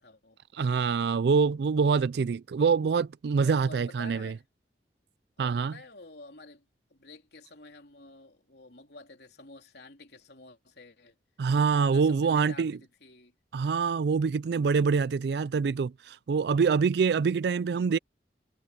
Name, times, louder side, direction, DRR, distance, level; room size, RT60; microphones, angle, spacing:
voice 1, 0.0-0.4 3.4-4.4 5.4-6.7 6.9-11.2 11.9-13.3 17.4-17.9, left 2 dB, 65° left, 3.5 m, -50 dB
voice 2, 0.5-4.3 5.4-5.7 11.4-12.8 13.5-18.0, right 5 dB, 65° right, 0.4 m, -25 dB
head